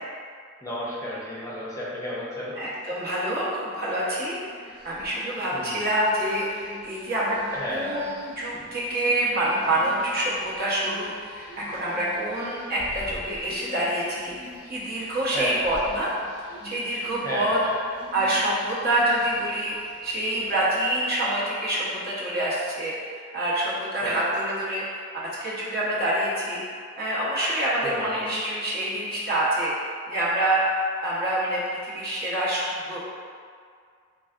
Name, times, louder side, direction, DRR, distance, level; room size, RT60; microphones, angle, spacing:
voice 1, 0.6-2.5 5.5-5.8 7.5-7.9 15.3-15.6 17.2-17.7 24.0-24.2 27.8-28.3, equal, 15° left, -6 dB, 0.6 m, -32 dB
voice 2, 2.6-7.4 7.7-16.1 16.6-17.6 18.1-19.8 20.0-26.6 27.0-29.7 30.1-30.6 31.0-33.0, right 1 dB, 50° right, -7 dB, 0.9 m, -26 dB
sound 1, 4.3-20.8, equal, 10° right, 1.0 m, -46 dB
3.9 x 3.3 x 2.4 m, 2.1 s
head